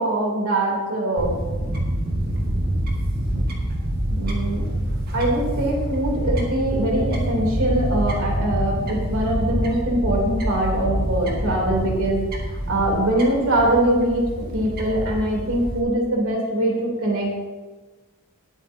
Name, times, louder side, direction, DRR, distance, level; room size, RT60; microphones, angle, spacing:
voice 1, 0.0-1.7 4.1-4.6 5.1-12.2 12.5-17.3, right 1 dB, 70° right, -2 dB, 3.4 m, -23 dB
Fowl / Bird, 1.2-15.8, right 1 dB, 40° right, 1.9 m, -26 dB
19.5 x 8.9 x 2.8 m, 1.3 s
head